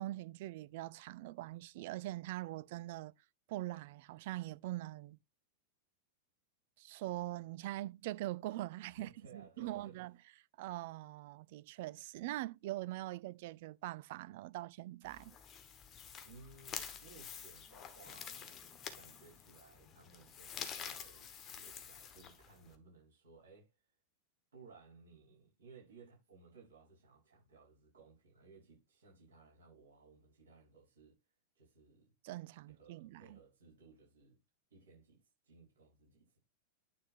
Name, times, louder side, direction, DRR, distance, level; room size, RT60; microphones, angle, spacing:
voice 1, 0.0-3.1 3.5-5.2 6.8-10.1 10.6-15.4 32.2-33.4, right 16 dB, 50° right, 0.3 m, -43 dB
voice 2, 9.0-9.9 16.2-23.7 24.5-31.2 31.5-32.1 32.7-34.4 34.7-35.2 35.4-36.4, right 4 dB, 70° right, 4.9 m, -60 dB
sound 1, 15.0-22.8, left 8 dB, 30° left, 1.2 m, -48 dB
9.5 x 3.4 x 4.4 m
figure-of-eight pair, 90°, 0 cm